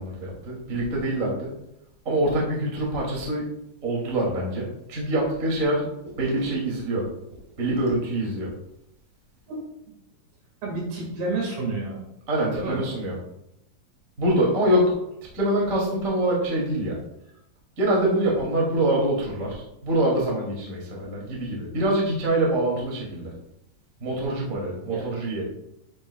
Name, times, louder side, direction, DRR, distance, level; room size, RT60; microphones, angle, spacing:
voice 1, 0.0-1.5 2.0-3.5 3.8-5.9 6.2-7.0 7.6-8.5 12.3-13.1 14.2-14.9 15.3-17.0 17.8-23.3 24.0-25.4, right 1 dB, 25° right, -3 dB, 1.7 m, -25 dB
voice 2, 10.6-12.0 12.5-12.8 24.9-25.1, right 3 dB, 60° right, -1 dB, 3.5 m, -30 dB
11.0 x 8.6 x 2.3 m, 0.82 s
omnidirectional pair, 5.7 m